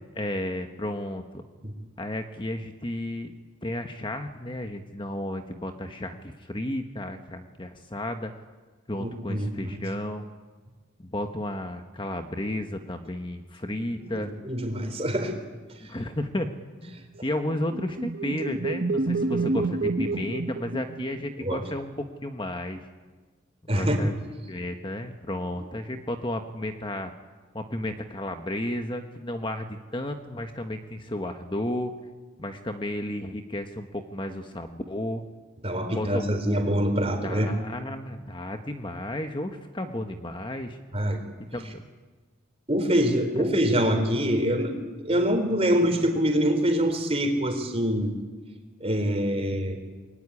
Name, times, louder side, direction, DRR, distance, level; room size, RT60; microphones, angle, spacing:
voice 1, 0.1-1.4 2.0-3.3 3.6-8.3 8.9-10.2 11.0-14.3 15.8-16.5 16.8-22.9 23.6-24.2 24.5-27.1 27.5-31.9 32.4-35.2 35.9-36.7 37.2-40.8 41.5-41.8 43.4-43.5, left 1 dB, 25° left, 6 dB, 1.2 m, -33 dB
voice 2, 9.0-9.8 13.8-13.9 14.1-15.3 21.4-21.6 23.7-24.0 35.6-37.5 40.9-41.2 42.7-44.7 45.0-48.1 48.8-49.8, equal, 30° right, 5 dB, 3.9 m, -25 dB
sound 1, 17.4-21.5, right 3 dB, 50° right, 0.9 m, -29 dB
25.5 x 21.5 x 9.9 m, 1.4 s
head